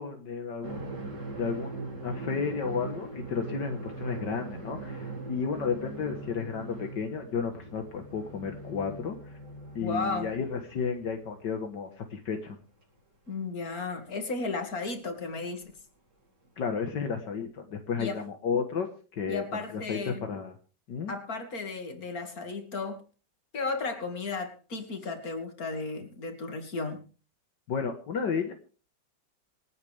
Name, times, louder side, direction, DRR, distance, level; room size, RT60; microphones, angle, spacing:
voice 1, 0.0-9.4 9.8-12.6 16.6-20.6 20.9-21.1 27.7-28.5, left 5 dB, 75° left, 4 dB, 2.1 m, -33 dB
sound 1, 0.6-11.6 11.9-12.0 13.3-13.4 14.8-14.9 16.4-16.5, right 2 dB, 70° right, 5.1 m, -41 dB
voice 2, 9.8-10.4 13.3-15.7 18.0-18.2 19.3-20.2 21.1-23.0 23.5-27.0, left 3 dB, 55° left, 6 dB, 2.9 m, -34 dB
27.5 x 9.5 x 3.5 m, 0.37 s
omnidirectional pair, 1.9 m